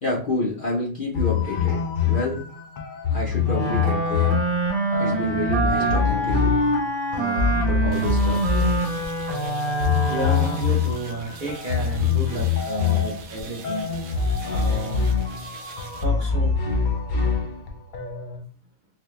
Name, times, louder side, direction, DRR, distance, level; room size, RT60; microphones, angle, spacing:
voice 1, 0.0-2.4 3.1-4.4 5.0-6.6 7.1-8.5, left 2 dB, 45° left, -2 dB, 0.7 m, -29 dB
sound 1, 1.1-18.4, left 6 dB, 80° left, 0.4 m, -25 dB
Wind instrument woodwind instrument, 3.4-10.8, right 2 dB, 5° right, 0.9 m, -25 dB
sound 2, 7.9-16.0, right 5 dB, 70° right, 0.5 m, -43 dB
voice 2, 10.0-13.9 14.5-15.1 16.0-16.6, right 1 dB, 45° right, -2 dB, 0.8 m, -31 dB
3.9 x 2.2 x 3.1 m, 0.43 s
omnidirectional pair, 1.5 m